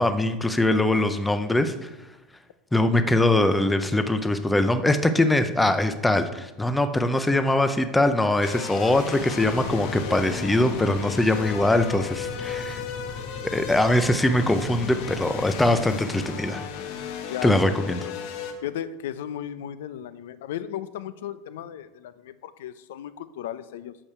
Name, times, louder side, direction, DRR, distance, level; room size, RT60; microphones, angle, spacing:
voice 1, 0.0-1.9 2.7-12.8 13.5-16.6 17.4-18.0, left 1 dB, 5° left, 9 dB, 0.4 m, -22 dB
sound 1, 8.4-18.5, left 7 dB, 45° left, 1.2 m, -35 dB
sound 2, 9.5-16.0, left 4 dB, 25° left, 0.8 m, -39 dB
voice 2, 17.3-18.1 18.6-24.0, left 10 dB, 75° left, 14 dB, 0.6 m, -35 dB
8.8 x 6.4 x 6.7 m, 1.0 s
supercardioid pair, 175°, 0 cm